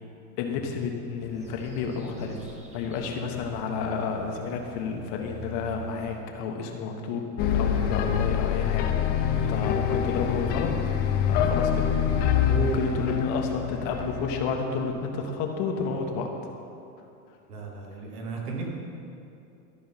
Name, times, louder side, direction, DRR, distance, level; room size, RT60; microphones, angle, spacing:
voice 1, 0.4-2.4 2.7-8.9 9.5-10.8 11.2-11.9 12.2-16.3, left 5 dB, 50° left, 3 dB, 1.3 m, -31 dB
sound 1, 1.2-6.2, right 4 dB, 15° right, 1.0 m, -45 dB
sound 2, 7.4-14.7, left 8 dB, 25° left, 0.3 m, -25 dB
voice 2, 12.4-12.8 17.5-18.7, right 5 dB, 80° right, -1 dB, 2.3 m, -33 dB
13.0 x 4.6 x 5.7 m, 2.6 s
supercardioid pair, 125°, 46 cm